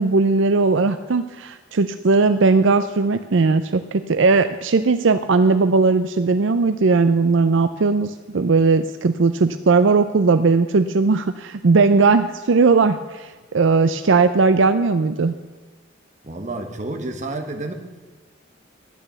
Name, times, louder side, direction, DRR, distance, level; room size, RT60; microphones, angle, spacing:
voice 1, 0.0-15.3, right 4 dB, 70° right, 10 dB, 0.5 m, -18 dB
voice 2, 16.2-17.7, right 2 dB, 40° right, 4 dB, 1.5 m, -30 dB
12.0 x 10.5 x 6.9 m, 1.3 s
head